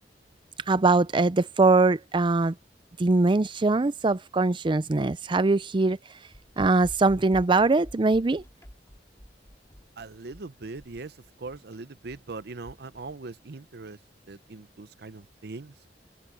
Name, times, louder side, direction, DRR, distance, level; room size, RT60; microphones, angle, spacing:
voice 1, 0.7-2.5 3.0-6.0 6.6-8.4, right 3 dB, 30° right, 0.5 m, -22 dB
sound 1, 6.3-13.1, equal, 15° left, 2.5 m, -48 dB
voice 2, 10.0-14.0 14.3-15.7, right 3 dB, 65° right, 0.7 m, -41 dB
open air
head